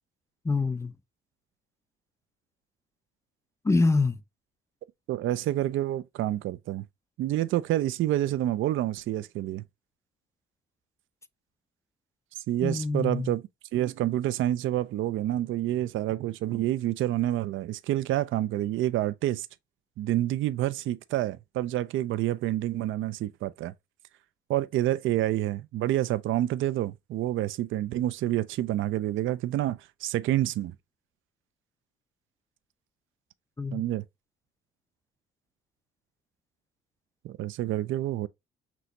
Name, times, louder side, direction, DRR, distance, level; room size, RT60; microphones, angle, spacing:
voice 1, 0.4-0.9 3.6-4.2 12.6-13.3 33.6-33.8, left 3 dB, 15° left, 0.3 m, -25 dB
voice 2, 5.1-6.8 7.2-9.6 12.5-13.4 13.7-19.5 20.0-23.7 24.5-30.7 33.7-34.0 37.2-38.3, right 13 dB, 70° right, 0.4 m, -28 dB
6.1 x 2.9 x 2.5 m
cardioid pair, 115°, 21 cm